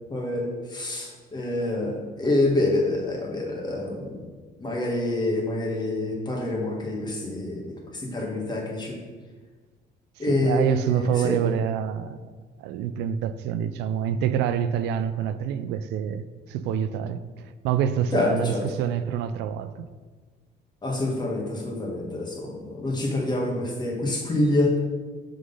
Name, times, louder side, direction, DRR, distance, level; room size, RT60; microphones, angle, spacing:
voice 1, 0.1-4.2 4.6-9.0 10.2-11.4 18.1-18.8 20.8-24.7, left 2 dB, 25° left, 1.7 m, -27 dB
voice 2, 10.2-12.3 12.6-19.9, right 9 dB, 85° right, 0.4 m, -27 dB
6.3 x 4.0 x 5.4 m
cardioid pair, 110°, 17 cm